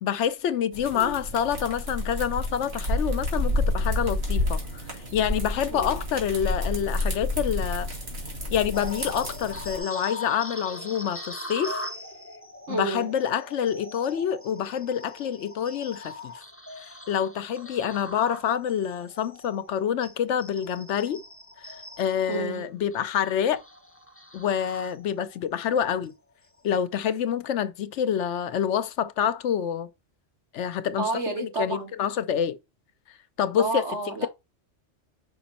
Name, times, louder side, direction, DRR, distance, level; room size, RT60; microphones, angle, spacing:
voice 1, 0.0-4.8 5.1-7.9 8.5-11.8 12.7-16.4 16.8-21.2 21.6-23.6 24.3-26.1 26.6-29.9 30.5-31.1 31.4-32.6 33.4-33.8, left 9 dB, 90° left, 1.0 m, -27 dB
sound 1, 0.7-9.8, left 1 dB, 60° right, 2.6 m, -29 dB
sound 2, 8.7-25.4 25.8-26.1 26.6-26.8, left 1 dB, 10° left, 1.0 m, -41 dB
voice 2, 12.7-13.1 22.3-22.6 31.0-31.9 33.6-34.3, right 3 dB, 75° right, 2.3 m, -30 dB
5.7 x 5.1 x 4.2 m
omnidirectional pair, 1.2 m